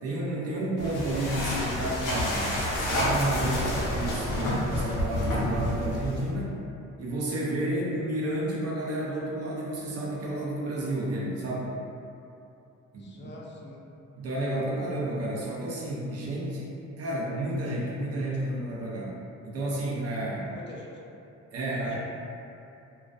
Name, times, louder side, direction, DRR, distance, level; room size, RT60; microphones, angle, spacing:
voice 1, 0.0-6.5 7.0-11.7 12.9-13.3 14.2-19.1 19.4-20.5 21.5-22.0, right 1 dB, 55° right, -5 dB, 0.7 m, -31 dB
sound 1, 0.8-6.3, left 1 dB, 85° left, 0.6 m, -29 dB
voice 2, 13.0-13.8 20.5-21.0 21.7-22.0, left 2 dB, 40° left, -3 dB, 0.5 m, -45 dB
2.3 x 2.1 x 2.5 m, 2.7 s
cardioid pair, 90°, 30 cm